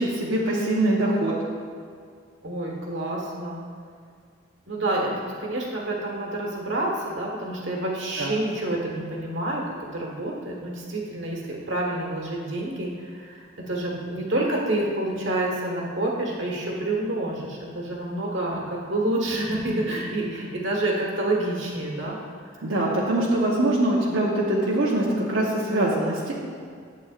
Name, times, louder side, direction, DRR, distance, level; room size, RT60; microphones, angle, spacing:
voice 1, 0.0-1.3 8.2-8.3 22.6-26.3, right 1 dB, 85° right, -6 dB, 1.1 m, -23 dB
voice 2, 2.4-3.6 4.7-9.6 9.9-22.2, right 1 dB, 65° right, -2 dB, 1.5 m, -28 dB
11.5 x 8.2 x 2.5 m, 2.1 s
head